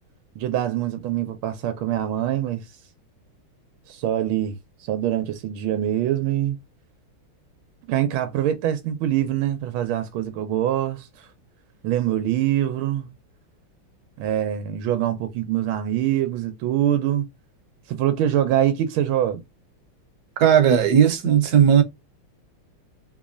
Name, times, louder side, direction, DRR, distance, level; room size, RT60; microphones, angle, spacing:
voice 1, 0.4-2.8 3.9-4.6 4.9-6.6 7.9-11.3 11.8-13.1 14.2-17.3 17.9-19.4, right 11 dB, 85° right, 1.4 m, -24 dB
voice 2, 20.4-21.8, right 8 dB, 60° right, 1.1 m, -16 dB
3.5 x 3.1 x 2.4 m
omnidirectional pair, 2.3 m